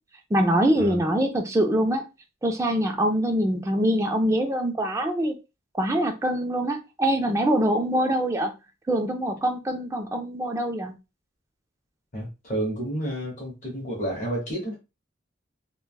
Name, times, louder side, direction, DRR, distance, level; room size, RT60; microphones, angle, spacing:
voice 1, 0.3-2.1 2.4-5.4 5.8-8.5 8.9-10.9, right 1 dB, 15° right, 0.3 m, -24 dB
voice 2, 12.1-14.8, right 1 dB, 40° left, 0.9 m, -30 dB
3.2 x 2.1 x 2.3 m
head